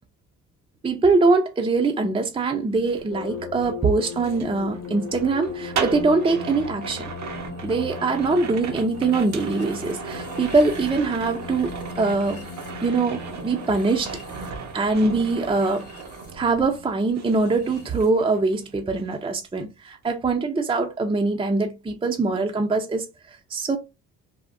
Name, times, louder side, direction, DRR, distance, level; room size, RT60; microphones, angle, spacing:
voice 1, 0.8-7.1 7.6-12.5 12.8-14.1 14.7-15.9 16.3-23.8, right 3 dB, 20° right, 0.5 m, -23 dB
sound 1, 2.7-16.8 17.1-18.6 18.9-19.2, right 6 dB, 65° right, 0.8 m, -36 dB
sound 2, 3.1-18.1, left 6 dB, 50° left, 0.9 m, -39 dB
3.5 x 2.1 x 2.4 m
cardioid pair, 90°, 30 cm